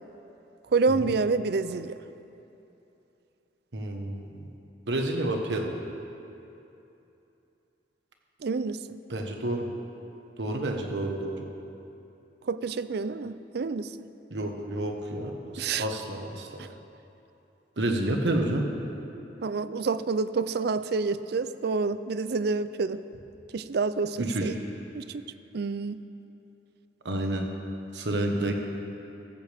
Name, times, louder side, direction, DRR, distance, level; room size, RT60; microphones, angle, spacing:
voice 1, 0.7-1.9 8.4-9.0 12.5-13.9 15.6-15.9 16.6-16.7 19.4-23.0 23.5-24.6 24.9-25.2 25.5-26.0, right 4 dB, 65° right, 14 dB, 0.4 m, -28 dB
voice 2, 3.7-4.3 4.9-5.7 9.1-9.7 10.4-11.4 14.3-16.6 17.8-18.7 24.2-24.5 27.0-27.5 27.9-28.5, right 1 dB, 80° right, 3 dB, 1.4 m, -29 dB
15.0 x 14.0 x 3.5 m, 2.9 s
head